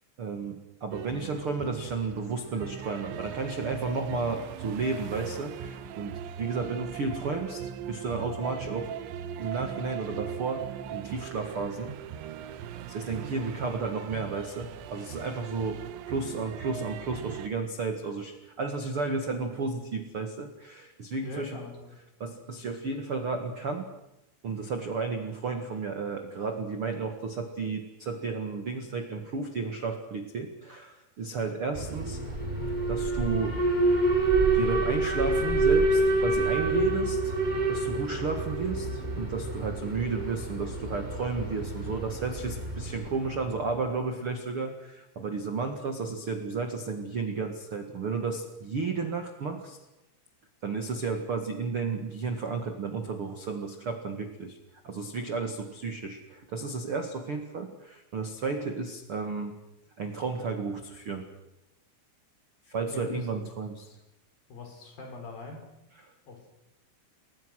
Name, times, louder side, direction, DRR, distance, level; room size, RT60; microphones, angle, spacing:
voice 1, 0.2-9.0 9.4-11.9 12.9-21.6 22.2-23.9 24.4-32.4 32.9-34.0 34.5-37.4 37.7-49.8 50.6-54.6 54.8-59.5 60.0-61.3 62.7-64.0, right 4 dB, 50° right, 5 dB, 1.7 m, -33 dB
sound 1, 0.9-17.5, right 9 dB, 80° right, 3.4 m, -39 dB
voice 2, 21.2-21.9 62.7-63.3 64.5-65.7 66.3-66.5, left 3 dB, 50° left, 5 dB, 5.6 m, -42 dB
Alarm, 31.7-43.8, right 2 dB, 10° right, 4.1 m, -27 dB
30.0 x 21.5 x 6.4 m, 0.91 s
omnidirectional pair, 5.3 m